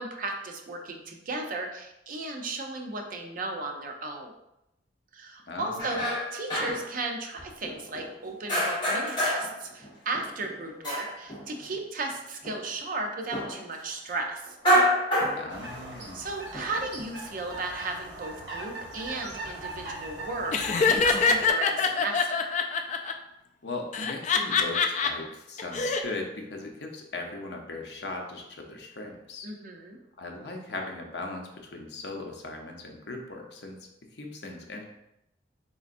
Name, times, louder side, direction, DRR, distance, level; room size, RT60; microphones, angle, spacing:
voice 1, 0.0-4.3 5.1-6.0 6.3-14.6 16.1-20.6 20.9-22.6 29.4-30.0, right 2 dB, 50° right, 3 dB, 0.6 m, -35 dB
voice 2, 5.5-6.0 15.3-16.2 23.6-29.5 30.2-34.8, left 2 dB, 65° left, 2 dB, 0.7 m, -38 dB
sound 1, 5.8-6.9 7.4-8.1 8.5-9.6 9.8-11.7 12.1-12.2 12.4-12.6 13.3-13.6 14.4-16.0 16.5-17.0, equal, 25° left, 1.4 m, -27 dB
sound 2, 15.5-21.5, right 2 dB, 65° right, 1.2 m, -39 dB
Laughter, 20.5-23.1 23.9-25.1 25.6-26.0, left 5 dB, 40° left, 0.3 m, -24 dB
4.2 x 3.7 x 2.5 m, 0.86 s
head